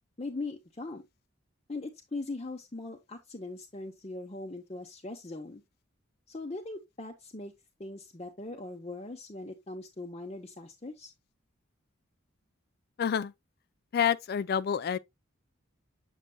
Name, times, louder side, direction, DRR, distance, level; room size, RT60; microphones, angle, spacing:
voice 1, 0.2-1.0 1.7-5.6 6.3-7.5 7.8-11.1, left 2 dB, 30° left, 0.7 m, -40 dB
voice 2, 13.0-13.3 13.9-15.0, left 8 dB, 50° left, 0.3 m, -28 dB
7.6 x 6.5 x 2.2 m
head